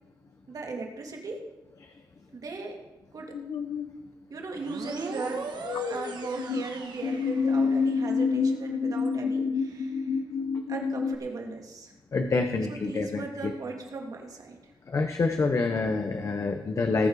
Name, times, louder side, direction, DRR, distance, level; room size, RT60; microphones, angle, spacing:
voice 1, 0.5-1.4 2.3-2.8 3.1-3.3 4.3-5.5 5.9-10.2 10.7-11.9 12.7-14.6, right 3 dB, 50° right, 1 dB, 2.4 m, -37 dB
sound 1, 3.3-3.9 5.6-6.6 7.0-11.2, left 5 dB, 80° left, 0.9 m, -28 dB
sound 2, 4.6-8.1, right 4 dB, 70° right, 1.8 m, -40 dB
voice 2, 12.1-13.5 14.9-17.1, left 3 dB, 40° left, 6 dB, 0.9 m, -27 dB
18.5 x 7.2 x 4.9 m, 1.0 s
wide cardioid pair, 130°, 8 cm